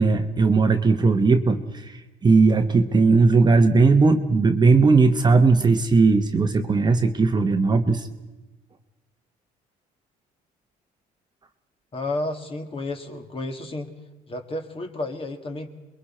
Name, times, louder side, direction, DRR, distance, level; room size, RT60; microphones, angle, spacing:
voice 1, 0.0-8.1, right 4 dB, 25° right, 7 dB, 1.1 m, -18 dB
voice 2, 11.9-13.9 14.3-15.7, left 2 dB, 35° left, 5 dB, 2.0 m, -31 dB
28.0 x 22.0 x 4.4 m, 1.1 s
cardioid pair, 110°, 17 cm